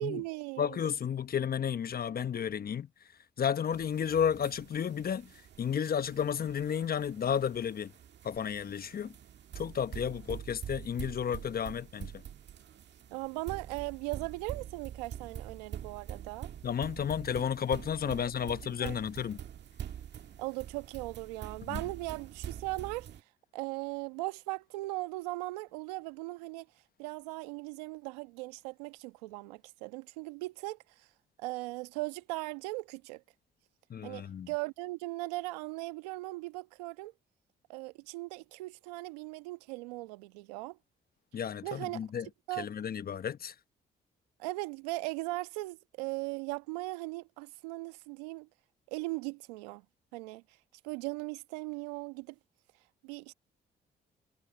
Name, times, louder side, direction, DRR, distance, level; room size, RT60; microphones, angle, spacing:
voice 1, 0.0-0.8 13.1-16.5 18.4-18.5 18.8-19.0 20.4-23.1 23.5-26.7 27.0-30.8 31.4-33.2 34.0-37.1 37.7-40.8 41.6-42.1 42.5-42.7 44.4-48.5 48.9-49.8 50.1-50.4 50.8-52.3 53.0-53.3, right 22 dB, 90° right, 1.3 m, -38 dB
voice 2, 0.6-2.9 3.4-5.3 5.6-7.9 8.2-9.1 9.5-12.1 16.6-19.4 21.7-21.8 33.9-34.5 41.3-42.3 42.6-43.5, left 8 dB, 50° left, 1.2 m, -32 dB
sound 1, 3.7-23.2, right 9 dB, 60° right, 1.7 m, -45 dB
hypercardioid pair, 50°, 20 cm